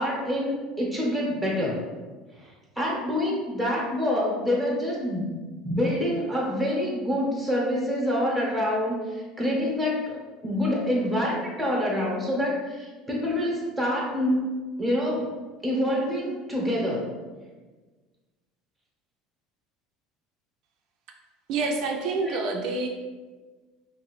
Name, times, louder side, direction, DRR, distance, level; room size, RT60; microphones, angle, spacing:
voice 1, 0.0-1.8 2.4-5.3 5.6-14.4 14.8-15.3 15.6-17.1 22.2-22.4, left 1 dB, ahead, -4 dB, 0.9 m, -26 dB
voice 2, 21.5-22.9, right 3 dB, 60° right, 1 dB, 0.4 m, -27 dB
2.7 x 2.5 x 3.0 m, 1.3 s
supercardioid pair, 95°, 0 cm